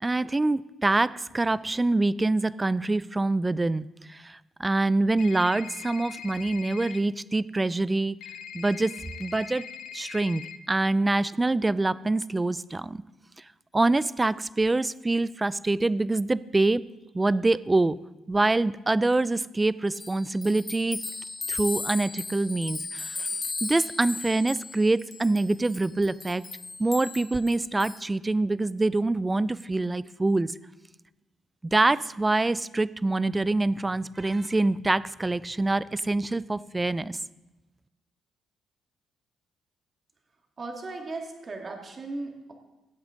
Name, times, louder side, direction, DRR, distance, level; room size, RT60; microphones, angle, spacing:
voice 1, 0.0-8.2 8.5-9.6 9.9-13.0 13.7-16.8 17.1-18.0 18.3-21.0 21.5-23.3 23.6-26.4 26.8-30.5 31.6-37.2, right 2 dB, 20° right, 18 dB, 0.3 m, -25 dB
sound 1, 5.2-7.0 8.2-10.6, left 8 dB, 80° left, 0.5 m, -41 dB
sound 2, 19.9-28.0, left 3 dB, 30° left, 0.6 m, -36 dB
voice 2, 40.6-42.5, right 3 dB, 40° right, 2 dB, 2.2 m, -37 dB
15.0 x 8.1 x 3.9 m, 1.1 s
cardioid pair, 90°, 0 cm